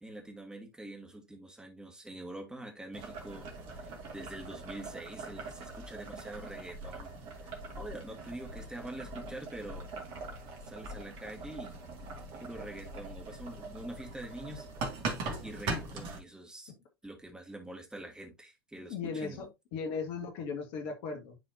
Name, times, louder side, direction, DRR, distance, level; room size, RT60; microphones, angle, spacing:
voice 1, 0.0-7.1 7.4-9.9 10.7-11.8 12.4-14.7 15.4-16.7 17.0-19.5, right 1 dB, 5° right, 2.4 m, -45 dB
Boiling, 2.9-16.2, right 3 dB, 45° right, 2.2 m, -41 dB
voice 2, 18.9-21.4, left 5 dB, 45° left, 1.9 m, -37 dB
11.0 x 4.1 x 2.8 m
figure-of-eight pair, 85°, 12 cm